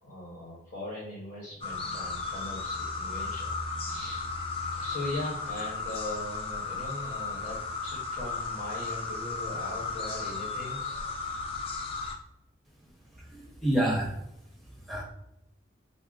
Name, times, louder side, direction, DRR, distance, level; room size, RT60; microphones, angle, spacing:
voice 1, 0.0-3.5 3.9-4.3 4.7-11.0, left 1 dB, 55° left, -5 dB, 1.1 m, -39 dB
sound 1, 1.6-12.1, left 4 dB, 30° left, 0.5 m, -35 dB
voice 2, 13.1-14.2 14.6-15.0, right 1 dB, ahead, -3 dB, 0.9 m, -29 dB
3.8 x 2.0 x 3.9 m, 0.81 s
head